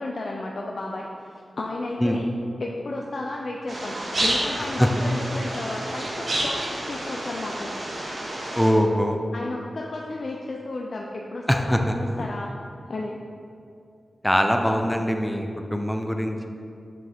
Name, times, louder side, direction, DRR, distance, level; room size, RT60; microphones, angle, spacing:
voice 1, 0.0-2.3 2.6-7.7 9.3-12.5 12.9-13.2, left 2 dB, 65° left, -1 dB, 0.5 m, -33 dB
sound 1, 3.7-8.7, right 1 dB, 55° right, 1.2 m, -29 dB
voice 2, 8.6-9.2 11.5-11.9 14.2-16.5, equal, 5° left, 4 dB, 0.6 m, -22 dB
6.8 x 6.3 x 3.5 m, 2.4 s
wide cardioid pair, 70°, 0 cm